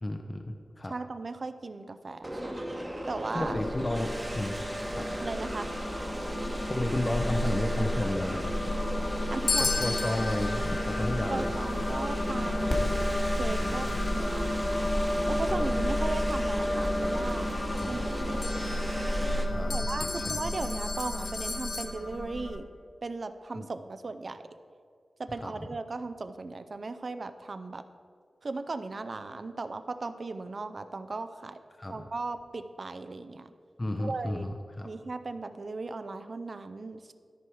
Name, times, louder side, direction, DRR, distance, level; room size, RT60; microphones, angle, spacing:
voice 1, 0.0-0.9 3.3-4.6 4.9-5.1 6.7-8.6 9.6-11.5 13.6-14.0 15.5-15.6 17.8-18.0 19.5-20.4 23.5-23.7 25.4-25.6 31.8-32.0 33.8-34.9, left 1 dB, 25° left, 4 dB, 0.5 m, -33 dB
voice 2, 0.9-2.5 3.1-3.6 5.2-5.7 9.3-9.7 11.3-13.0 13.4-13.9 14.1-14.8 15.3-17.5 17.9-18.0 18.3-18.4 19.7-22.7 23.0-24.4 25.2-27.8 28.4-31.6 31.9-33.5 34.0-34.5 34.8-37.1, right 3 dB, 50° right, 10 dB, 0.4 m, -37 dB
sound 1, 2.2-19.5, right 1 dB, 20° right, 1.0 m, -37 dB
sound 2, 3.4-22.6, left 1 dB, 45° left, 1.2 m, -31 dB
sound 3, 9.5-13.3 17.3-17.4 17.8-21.9, left 4 dB, 75° left, 0.8 m, -36 dB
13.0 x 4.8 x 4.6 m, 2.3 s
wide cardioid pair, 85°, 0 cm